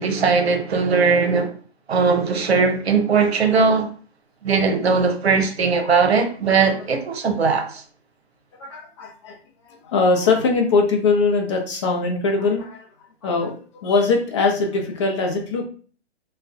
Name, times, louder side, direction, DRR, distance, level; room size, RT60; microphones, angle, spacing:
voice 1, 0.0-1.5 1.9-3.9 4.4-7.8, right 5 dB, 70° right, 0.8 m, -19 dB
voice 2, 8.6-9.4 9.6-12.9 13.2-15.6, left 3 dB, 30° left, 0.6 m, -21 dB
2.5 x 2.2 x 3.5 m
hypercardioid pair, 140°, 33 cm